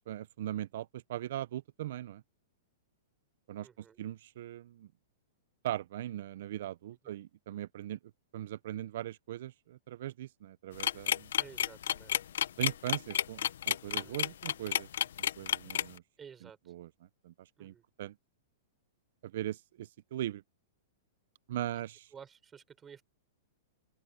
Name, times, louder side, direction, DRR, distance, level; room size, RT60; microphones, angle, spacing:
voice 1, 0.0-2.2 3.5-4.9 5.6-8.0 8.3-11.3 12.6-14.9 15.2-16.0 16.4-16.9 17.2-18.2 19.2-20.4 21.5-22.1, right 13 dB, 65° right, 0.8 m, -39 dB
voice 2, 3.6-4.0 7.0-7.1 11.3-12.2 13.9-14.2 16.2-16.7 17.6-17.8 21.8-21.9 22.1-23.0, right 7 dB, 20° right, 5.5 m, -53 dB
sound 1, 10.8-16.0, left 10 dB, 75° left, 1.0 m, -30 dB
open air
hypercardioid pair, 135°, 0 cm